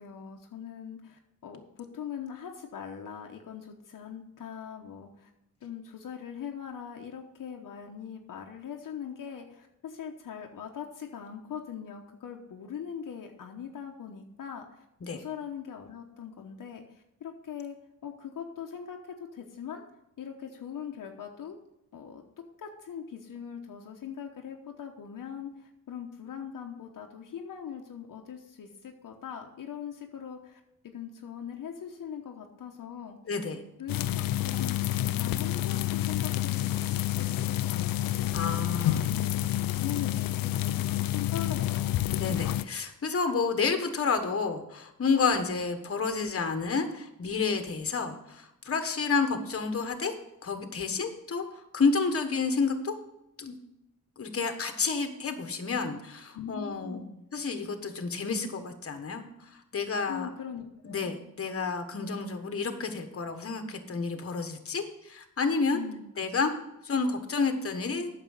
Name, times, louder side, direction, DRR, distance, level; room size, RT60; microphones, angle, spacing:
voice 1, 0.0-5.3 5.6-14.8 15.1-17.8 18.0-19.8 20.2-21.6 21.9-33.2 33.8-39.4 39.8-42.1 56.3-57.2 60.1-61.2 65.7-66.1, left 8 dB, 70° left, 2 dB, 1.1 m, -41 dB
voice 2, 33.3-33.6 38.3-39.1 42.2-50.1 50.4-52.9 53.4-53.6 54.2-57.0 57.3-60.3 60.8-65.8 66.2-66.5 66.8-68.1, left 4 dB, 45° left, 7 dB, 1.4 m, -30 dB
sound 1, 33.9-42.6, left 14 dB, 90° left, 0.5 m, -29 dB
9.1 x 6.6 x 6.5 m, 0.86 s
cardioid pair, 95°, 33 cm